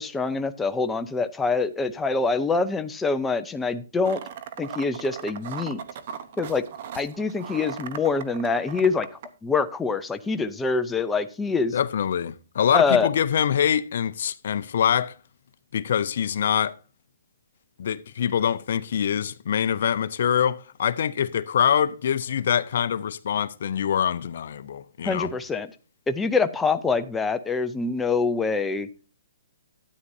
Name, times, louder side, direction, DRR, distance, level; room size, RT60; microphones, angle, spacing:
voice 1, 0.0-4.2 4.6-5.8 6.4-6.6 6.9-9.1 9.4-11.7 12.7-13.1 25.0-25.7 26.1-28.9, left 4 dB, 10° left, 0.5 m, -25 dB
sound 1, 4.0-9.3, right 8 dB, 50° right, 0.9 m, -38 dB
voice 2, 11.7-15.1 15.7-16.8 17.8-25.3, left 8 dB, 60° left, 0.5 m, -24 dB
12.5 x 9.5 x 2.7 m
hypercardioid pair, 145°, 0 cm